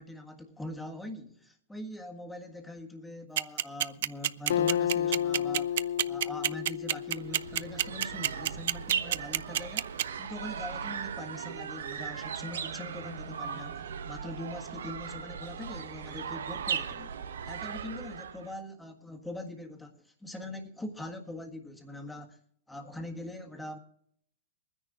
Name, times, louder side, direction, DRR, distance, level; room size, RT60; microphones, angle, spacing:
voice 1, 0.0-17.2 17.4-22.4 22.7-23.8, left 1 dB, 5° left, 1.5 m, -42 dB
sound 1, 3.4-10.0, right 12 dB, 65° right, 0.4 m, -26 dB
Acoustic guitar, 4.5-8.1, left 10 dB, 70° left, 0.5 m, -31 dB
sound 2, 7.0-18.5, right 7 dB, 85° right, 1.1 m, -38 dB
22.0 x 10.0 x 3.8 m
hypercardioid pair, 145°, 0 cm